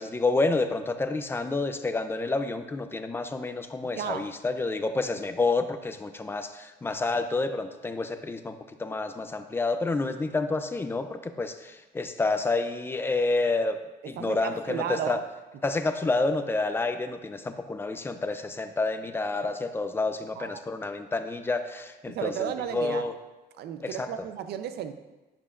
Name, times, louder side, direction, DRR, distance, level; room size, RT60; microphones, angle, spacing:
voice 1, 0.0-13.8 14.0-15.2 15.6-23.1 23.8-24.1, left 3 dB, 15° left, 8 dB, 0.4 m, -29 dB
voice 2, 4.0-4.3 14.2-15.3 19.4-19.5 20.4-20.6 22.1-23.1 23.6-24.9, right 9 dB, 75° right, 9 dB, 0.6 m, -33 dB
11.0 x 10.5 x 2.5 m, 1.1 s
cardioid pair, 180°, 17 cm